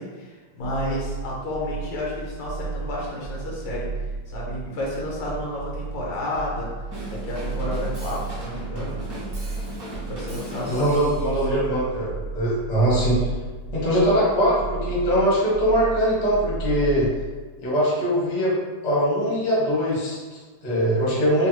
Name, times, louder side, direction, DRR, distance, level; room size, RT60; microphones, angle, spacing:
voice 1, 0.0-3.9 4.3-6.7 7.1-9.0 10.0-11.6, left 1 dB, 85° left, -4 dB, 1.5 m, -31 dB
sound 1, 0.6-17.1, right 4 dB, 70° right, 0.7 m, -33 dB
Drum kit / Drum, 6.9-11.3, equal, 35° right, 0.5 m, -37 dB
voice 2, 10.7-13.3 13.7-17.1 17.6-18.5 18.8-21.5, equal, 40° left, -6 dB, 0.6 m, -22 dB
3.4 x 2.0 x 3.0 m, 1.4 s
omnidirectional pair, 2.0 m